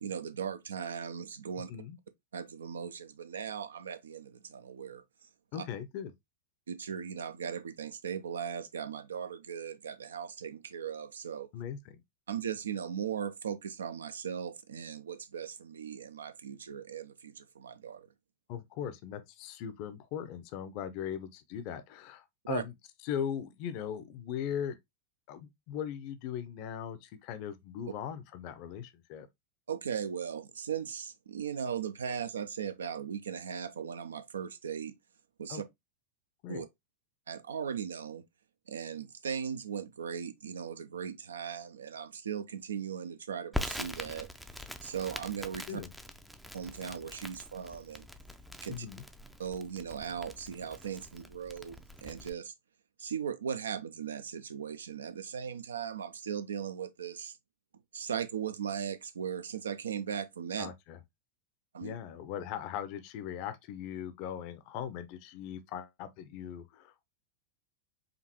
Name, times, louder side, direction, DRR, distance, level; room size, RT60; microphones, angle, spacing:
voice 1, 0.0-1.7 2.3-5.0 5.6-5.7 6.7-11.5 12.3-18.1 22.5-22.6 29.7-34.9 35.4-35.6 36.5-36.7 37.3-38.2 38.7-44.3 44.8-45.8 46.5-48.1 48.6-48.9 49.4-52.5 53.0-57.3 57.9-60.7 61.7-62.0, right 7 dB, 70° right, 0.5 m, -38 dB
voice 2, 5.5-6.1 11.5-12.0 18.5-22.7 23.0-24.8 25.3-29.3 35.5-35.6 36.4-36.6 45.7-45.9 48.7-49.0 60.6-61.0 61.8-67.1, left 9 dB, 45° left, 0.5 m, -39 dB
Crackle, 43.5-52.3, left 1 dB, ahead, 0.4 m, -43 dB
5.1 x 2.5 x 2.8 m
figure-of-eight pair, 90°, 0 cm